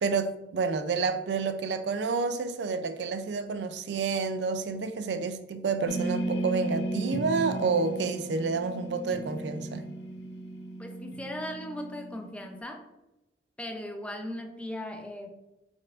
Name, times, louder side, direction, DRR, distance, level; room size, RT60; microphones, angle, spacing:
voice 1, 0.0-9.9, right 4 dB, 70° right, 0.4 m, -29 dB
sound 1, 5.9-12.6, right 1 dB, 90° left, 0.6 m, -35 dB
voice 2, 10.8-12.9 13.6-15.3, left 1 dB, 5° left, 0.5 m, -38 dB
4.9 x 4.2 x 2.4 m
head